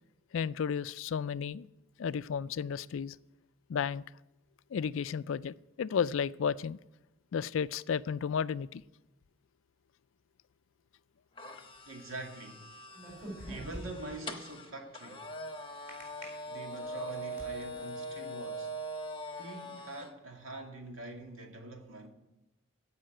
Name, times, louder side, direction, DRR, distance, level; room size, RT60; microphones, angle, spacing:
voice 1, 0.3-1.7 2.0-3.2 3.7-4.0 4.7-6.8 7.3-8.8, left 7 dB, 70° left, 0.4 m, -33 dB
sound 1, 11.4-20.1, right 1 dB, 25° left, 1.1 m, -42 dB
voice 2, 11.8-12.7 13.4-15.3 16.5-18.7 19.4-22.1, right 2 dB, 80° right, 2.1 m, -44 dB
sound 2, 12.9-14.2 15.9-16.2 16.9-17.5, equal, 10° right, 4.3 m, -43 dB
15.0 x 5.6 x 9.0 m
head